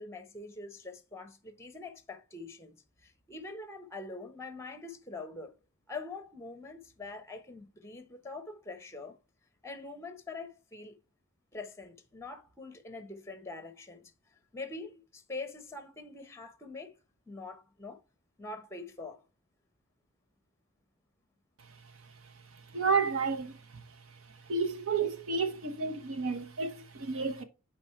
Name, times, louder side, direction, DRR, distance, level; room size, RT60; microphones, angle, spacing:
voice 1, 0.0-2.7 3.0-5.5 5.9-9.2 9.6-11.0 11.5-14.0 14.5-17.0 17.3-18.0 18.4-19.2, left 3 dB, 10° left, 0.9 m, -44 dB
voice 2, 22.7-23.6 24.5-27.4, right 4 dB, 65° right, 0.9 m, -31 dB
6.2 x 4.6 x 4.4 m
head